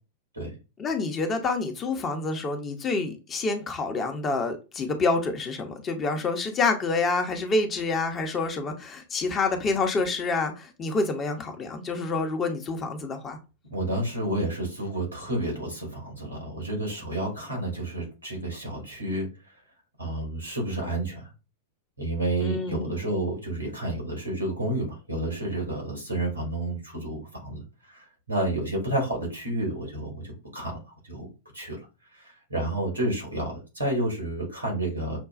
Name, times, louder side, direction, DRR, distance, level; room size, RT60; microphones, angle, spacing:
voice 1, 0.8-13.4 22.4-23.0, left 3 dB, 25° left, 0.8 m, -27 dB
voice 2, 13.7-19.3 20.0-21.3 22.0-31.8 32.1-35.2, right 1 dB, 85° right, 2.1 m, -30 dB
6.0 x 2.3 x 2.5 m
figure-of-eight pair, 95°, 0 cm